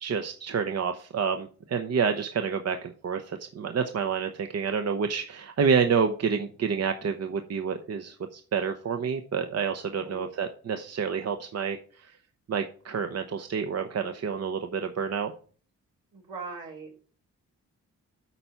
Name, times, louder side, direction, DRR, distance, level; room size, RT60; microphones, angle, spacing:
voice 1, 0.0-12.1 12.5-15.3, right 6 dB, 55° right, 6 dB, 0.8 m, -28 dB
voice 2, 9.9-10.3 16.1-17.0, right 4 dB, 80° right, -3 dB, 3.5 m, -41 dB
8.3 x 4.5 x 7.0 m, 0.42 s
cardioid pair, 70°, 31 cm